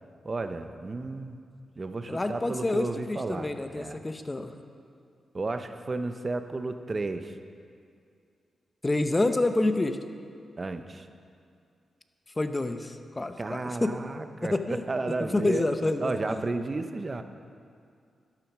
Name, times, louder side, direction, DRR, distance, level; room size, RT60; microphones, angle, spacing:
voice 1, 0.2-1.4 1.8-4.0 5.3-7.4 10.6-11.1 13.4-15.6 16.0-17.2, right 3 dB, 35° right, 8 dB, 0.8 m, -33 dB
voice 2, 2.1-4.5 8.8-10.0 12.4-14.0 14.5-14.8 15.3-16.4, left 2 dB, 20° left, 8 dB, 0.9 m, -28 dB
13.0 x 10.5 x 6.1 m, 2.4 s
cardioid pair, 80°, 0 cm